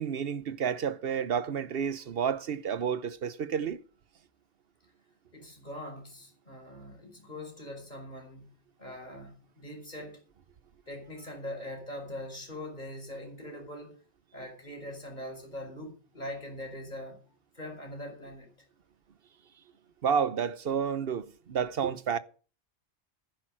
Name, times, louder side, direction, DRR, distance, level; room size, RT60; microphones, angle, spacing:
voice 1, 0.0-3.8 20.0-22.2, right 7 dB, 60° right, 1.0 m, -30 dB
voice 2, 5.3-8.5 8.8-10.2 10.9-14.0 14.3-17.2 17.5-18.5, left 1 dB, 40° left, 4.7 m, -42 dB
10.5 x 10.0 x 6.3 m
omnidirectional pair, 1.2 m